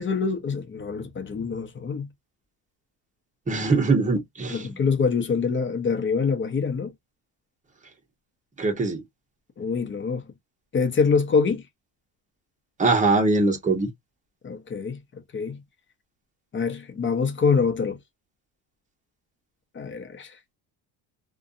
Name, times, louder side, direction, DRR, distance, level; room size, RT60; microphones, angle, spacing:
voice 1, 0.0-2.1 4.5-6.9 9.6-10.2 10.7-11.6 14.4-15.0 15.3-15.6 16.5-18.0 19.7-20.3, left 5 dB, 30° left, 0.7 m, -25 dB
voice 2, 3.5-4.8 8.6-9.0 12.8-13.9, right 3 dB, 20° right, 0.9 m, -22 dB
2.5 x 2.3 x 2.5 m
cardioid pair, 110°, 42 cm